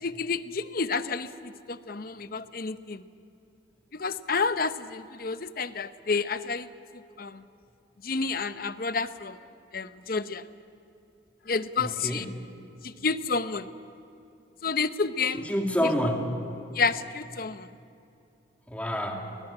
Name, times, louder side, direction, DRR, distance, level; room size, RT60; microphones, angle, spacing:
voice 1, 0.0-3.0 3.9-6.7 7.2-7.4 8.0-9.4 9.7-10.4 11.5-12.3 12.8-13.7 14.6-15.5 15.8-15.9 16.7-17.7, left 4 dB, 50° left, 12 dB, 0.8 m, -30 dB
voice 2, 11.8-12.4 15.3-16.3 18.7-19.4, equal, 5° left, 2 dB, 2.2 m, -28 dB
20.5 x 19.5 x 9.9 m, 2.8 s
head